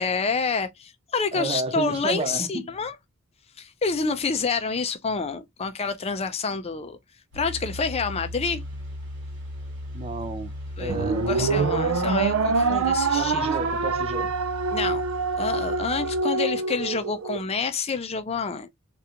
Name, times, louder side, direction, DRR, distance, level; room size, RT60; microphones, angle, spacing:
voice 1, 0.0-2.9 3.6-7.0 7.3-8.6 10.8-13.5 14.7-15.0 15.4-18.7, left 4 dB, 30° left, 0.4 m, -28 dB
voice 2, 1.3-2.7 9.9-10.5 10.8-11.6 13.1-14.3, right 3 dB, 25° right, 0.4 m, -31 dB
sound 1, 7.3-16.2, left 1 dB, 55° right, 1.5 m, -37 dB
sound 2, 10.9-17.4, right 4 dB, 80° right, 0.5 m, -25 dB
3.5 x 2.4 x 2.8 m
head